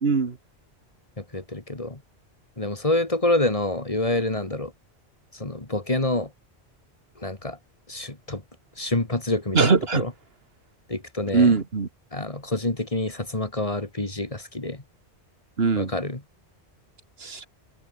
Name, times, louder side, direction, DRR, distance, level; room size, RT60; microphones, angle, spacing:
voice 1, 0.0-0.4 9.5-10.0 11.3-11.9 15.6-15.9 17.2-17.5, right 4 dB, 60° right, 1.9 m, -21 dB
voice 2, 1.3-2.0 2.6-4.7 5.4-6.3 7.2-7.6 7.9-8.4 8.8-10.1 10.9-11.5 12.1-14.8 15.8-16.2, left 2 dB, 30° left, 2.2 m, -27 dB
omnidirectional pair, 1.1 m